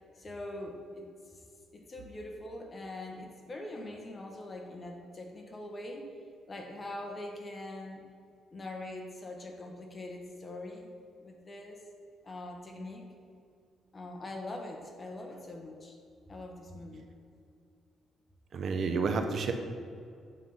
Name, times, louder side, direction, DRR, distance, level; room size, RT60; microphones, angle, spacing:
voice 1, 0.0-1.4 1.7-6.2 6.5-8.0 8.5-10.9 11.2-11.8 12.2-13.0 13.9-16.0 16.3-17.1, left 1 dB, 30° left, 2 dB, 1.3 m, -43 dB
voice 2, 18.5-19.5, right 4 dB, 55° right, 6 dB, 0.8 m, -30 dB
8.1 x 3.7 x 5.6 m, 2.3 s
cardioid pair, 90°, 0 cm